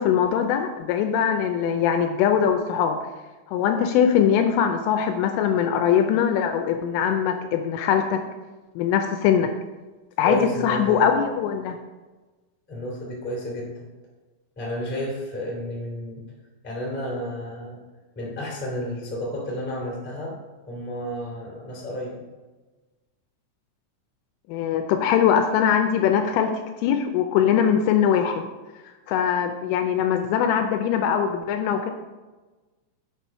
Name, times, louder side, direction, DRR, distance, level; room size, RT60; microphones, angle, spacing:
voice 1, 0.0-3.0 3.5-8.2 8.8-9.5 10.2-11.8 24.5-26.5 26.8-28.5 29.1-31.9, left 8 dB, 80° left, 6 dB, 3.0 m, -21 dB
voice 2, 10.2-11.1 12.7-13.8 14.5-16.3 16.6-17.8 18.1-20.4 20.7-22.2, equal, 5° left, -4 dB, 1.1 m, -31 dB
7.8 x 6.7 x 5.4 m, 1.2 s
omnidirectional pair, 6.0 m